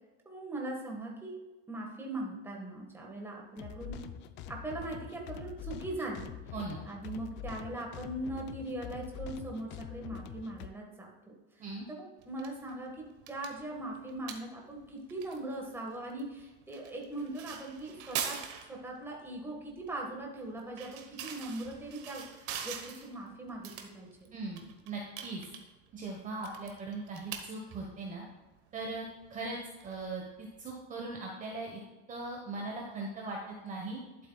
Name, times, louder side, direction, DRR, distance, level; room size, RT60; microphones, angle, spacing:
voice 1, 0.2-1.4 1.7-4.0 4.5-6.4 6.8-18.4 18.7-24.3, right 1 dB, 5° right, -1 dB, 1.5 m, -40 dB
sound 1, 3.6-10.7, left 8 dB, 35° left, 0.5 m, -44 dB
voice 2, 6.5-6.8 11.6-11.9 24.3-25.4 25.9-28.2 28.7-29.6 29.8-31.8 32.1-34.0, right 3 dB, 25° right, -1 dB, 1.2 m, -39 dB
sound 2, 12.2-30.6, right 8 dB, 45° right, 1.2 m, -45 dB
12.0 x 7.6 x 2.3 m, 1.1 s
supercardioid pair, 150°, 33 cm